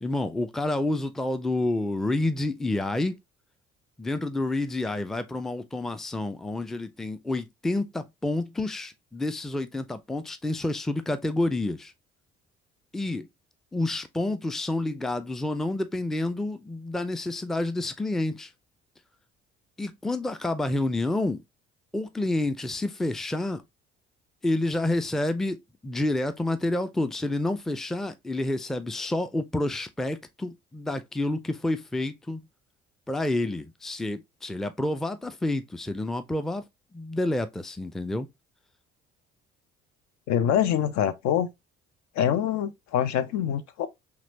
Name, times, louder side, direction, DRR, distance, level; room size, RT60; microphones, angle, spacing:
voice 1, 0.0-3.2 4.0-11.9 12.9-13.3 13.7-18.5 19.8-21.4 21.9-23.6 24.4-25.6 25.8-32.4 33.1-36.6 36.9-38.3, left 2 dB, ahead, 0.5 m, -29 dB
voice 2, 40.3-41.5 42.2-43.9, left 9 dB, 55° left, 0.7 m, -25 dB
5.9 x 2.4 x 2.8 m
figure-of-eight pair, 50°, 33 cm